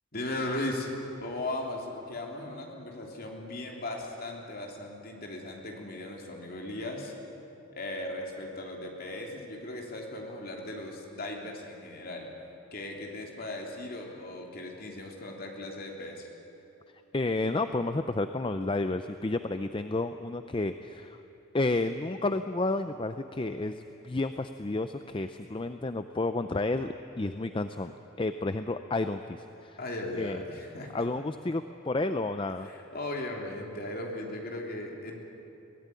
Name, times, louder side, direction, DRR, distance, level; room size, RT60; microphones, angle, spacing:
voice 1, 0.1-7.1 7.7-12.3 12.7-16.3 29.8-31.0 32.6-35.2, left 1 dB, 45° left, 0 dB, 3.2 m, -37 dB
voice 2, 17.1-21.2 21.5-27.9 28.2-29.8 30.1-30.4 30.9-32.7, left 2 dB, 25° left, 9 dB, 0.5 m, -31 dB
23.0 x 17.0 x 9.7 m, 2.9 s
head